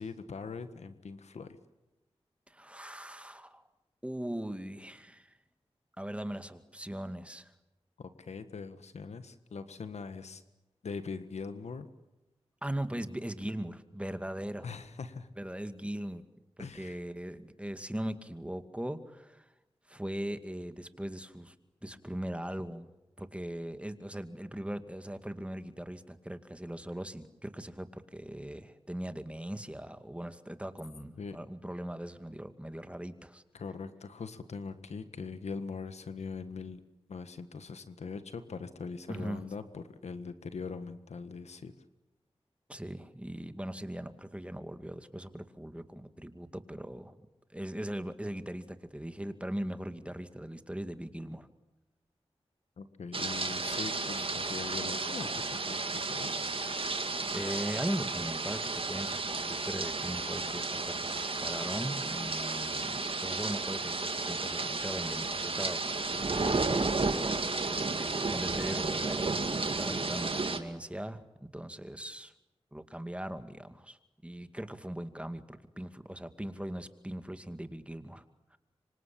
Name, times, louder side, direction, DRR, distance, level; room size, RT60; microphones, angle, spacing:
voice 1, 0.0-1.6 8.0-10.4 10.8-11.9 14.6-15.3 16.6-17.0 31.2-31.4 33.5-36.8 37.1-41.7 52.8-56.4, left 5 dB, 85° left, 10 dB, 1.6 m, -41 dB
voice 2, 2.5-3.6 4.0-5.4 6.0-7.5 12.6-14.7 15.3-16.2 16.6-19.5 19.9-21.5 21.8-22.9 23.2-33.4 39.1-39.4 42.7-47.1 47.5-51.5 54.1-54.3 57.3-65.8 66.4-67.2 67.9-72.3 72.7-78.2 78.5-78.6, right 1 dB, 10° right, 9 dB, 2.3 m, -40 dB
sound 1, 53.1-70.6, right 3 dB, 55° right, 2.3 m, -33 dB
25.5 x 25.5 x 8.7 m, 0.97 s
cardioid pair, 40°, 11 cm